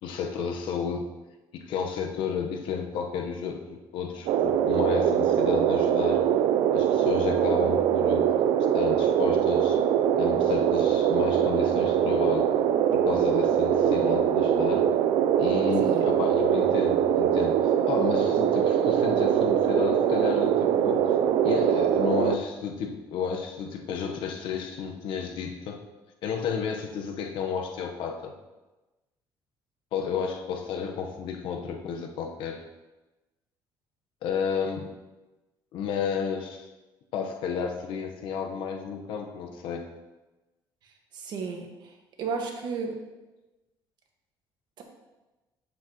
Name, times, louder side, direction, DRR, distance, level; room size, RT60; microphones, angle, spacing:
voice 1, 0.0-1.1 1.5-6.2 6.7-8.3 8.7-9.8 10.2-12.5 12.9-14.9 15.4-25.8 26.2-28.3 29.9-32.6 34.2-34.9 35.7-36.7 37.1-39.9, left 6 dB, 75° left, 4 dB, 1.1 m, -32 dB
sound 1, 4.3-22.4, right 9 dB, 75° right, 0.5 m, -23 dB
voice 2, 41.1-41.9 42.2-42.9 44.8-44.9, right 5 dB, 60° right, 2 dB, 1.5 m, -33 dB
8.5 x 7.6 x 3.0 m, 1.1 s
cardioid pair, 120°, 9 cm